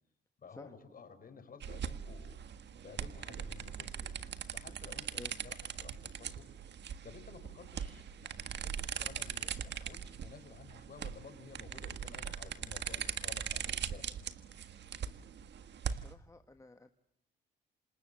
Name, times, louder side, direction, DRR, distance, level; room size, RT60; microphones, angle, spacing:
voice 1, 0.4-2.4 2.8-6.5 7.0-14.3, left 5 dB, 45° left, 8 dB, 5.5 m, -54 dB
sound 1, 1.6-16.1, right 8 dB, 60° right, 1.7 m, -41 dB
voice 2, 15.9-16.9, left 2 dB, 15° left, 8 dB, 1.3 m, -52 dB
28.0 x 27.0 x 7.8 m, 0.77 s
cardioid pair, 90°, 20 cm